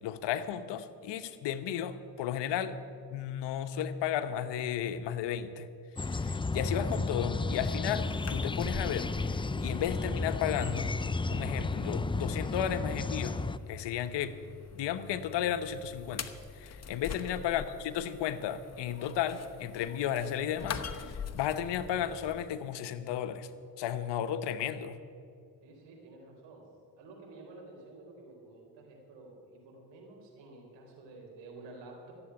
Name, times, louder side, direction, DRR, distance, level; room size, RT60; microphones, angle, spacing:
voice 1, 0.0-2.8 3.1-5.7 6.0-10.9 11.3-13.4 13.7-14.4 14.7-23.5 23.8-25.0, left 9 dB, 75° left, 11 dB, 1.0 m, -34 dB
sound 1, 6.0-13.6, left 3 dB, 10° left, 0.5 m, -33 dB
sound 2, 7.8-22.5, left 6 dB, 35° left, 1.0 m, -45 dB
voice 2, 25.6-26.6 27.0-32.1, right 2 dB, 80° right, 0 dB, 4.1 m, -51 dB
14.0 x 8.0 x 10.0 m, 2.4 s
supercardioid pair, 60°, 43 cm